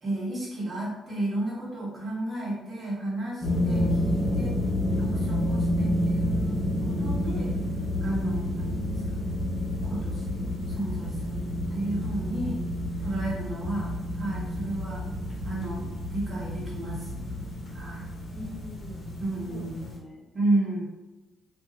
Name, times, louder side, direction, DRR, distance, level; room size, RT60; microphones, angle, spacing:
voice 1, 0.0-4.6 5.0-7.5 8.0-9.2 9.8-11.4 11.7-12.6 13.0-15.0 15.4-15.8 16.1-17.3 17.7-18.1 19.2-19.9 20.3-20.8, right 2 dB, 40° right, -6 dB, 1.4 m, -32 dB
sound 1, 3.4-20.0, left 1 dB, 40° left, 1.0 m, -29 dB
voice 2, 18.3-19.1 19.5-20.3, left 1 dB, 20° right, -7 dB, 0.7 m, -43 dB
2.6 x 2.6 x 2.8 m, 1.1 s
cardioid pair, 90°, 0 cm